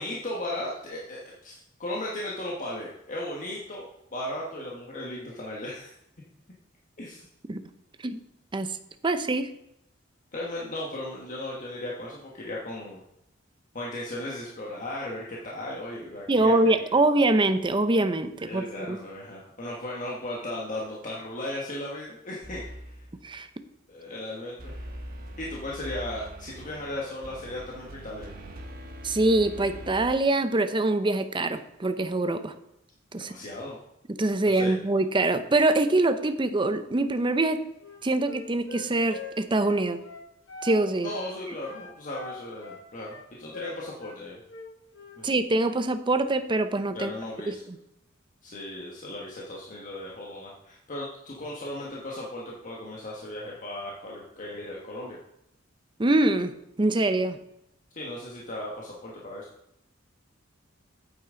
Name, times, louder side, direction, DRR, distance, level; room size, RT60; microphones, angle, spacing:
voice 1, 0.0-5.9 7.0-7.2 10.3-13.0 13.7-16.7 18.5-22.6 22.9-23.0 23.9-24.8 25.4-28.3 33.2-33.8 34.4-34.7 41.0-44.4 45.2-45.3 46.9-47.6 48.4-55.2 57.9-59.4, left 1 dB, 40° left, -4 dB, 1.5 m, -36 dB
voice 2, 9.0-9.5 16.3-19.0 23.2-23.5 29.0-32.5 33.1-33.3 34.2-37.6 38.0-40.0 40.6-41.1 45.2-47.1 47.5-47.6 56.0-57.4, right 2 dB, 25° right, 9 dB, 0.6 m, -24 dB
sound 1, 22.4-23.1 24.6-30.1, right 1 dB, 50° right, 1.4 m, -42 dB
Wind instrument woodwind instrument, 37.8-40.8 41.0-41.3 41.6-44.2 44.5-45.2, left 3 dB, 65° left, 1.7 m, -42 dB
9.0 x 8.8 x 3.8 m, 0.80 s
head